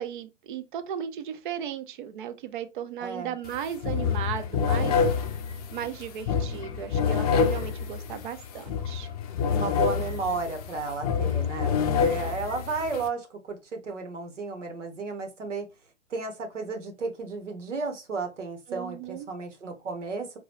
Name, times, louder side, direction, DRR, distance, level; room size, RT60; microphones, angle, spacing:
voice 1, 0.0-5.0 5.7-9.1 11.8-12.1 18.7-19.3, right 9 dB, 45° right, 0.5 m, -36 dB
voice 2, 3.0-3.3 9.5-15.7 16.1-20.3, right 4 dB, 80° right, 1.2 m, -33 dB
sound 1, 3.4-3.6 3.8-13.1, left 6 dB, 35° left, 0.5 m, -27 dB
3.9 x 2.3 x 3.0 m
figure-of-eight pair, 120°, 36 cm